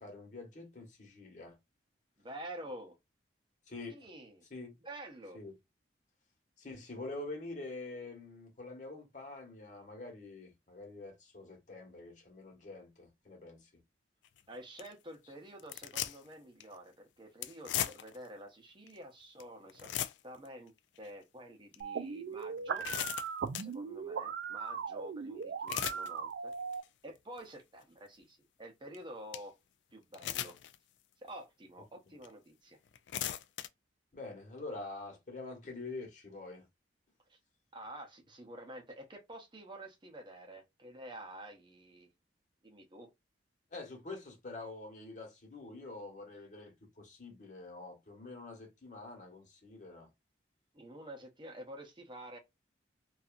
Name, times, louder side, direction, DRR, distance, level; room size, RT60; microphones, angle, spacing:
voice 1, 0.0-1.6 3.7-4.0 4.5-4.8 5.3-5.5 6.6-13.7 34.1-36.7 43.7-50.1, left 2 dB, 40° left, 1.1 m, -46 dB
voice 2, 2.2-2.9 3.9-4.4 4.8-5.4 14.5-19.9 20.2-20.7 21.0-22.9 23.1-23.3 23.6-26.5 27.0-29.5 29.9-30.6 31.2-32.8 37.3-37.4 37.7-42.1 42.6-43.1 50.7-52.4, right 1 dB, 25° right, 0.7 m, -49 dB
sound 1, 14.2-14.4 14.8-14.9 15.6-16.3 16.6-16.7 17.4-18.3 18.9-19.0 19.4-19.5 19.7-20.5 21.0-21.1 21.7-21.8 22.4-23.7 25.4-26.1 26.5-26.9 27.4-27.5 28.9-29.0 29.3-29.4 30.1-30.8 31.3-31.4 32.2-32.3 32.9-33.7, left 11 dB, 75° left, 0.3 m, -37 dB
sound 2, 21.8-26.8, right 6 dB, 70° right, 0.3 m, -39 dB
2.7 x 2.4 x 2.4 m
head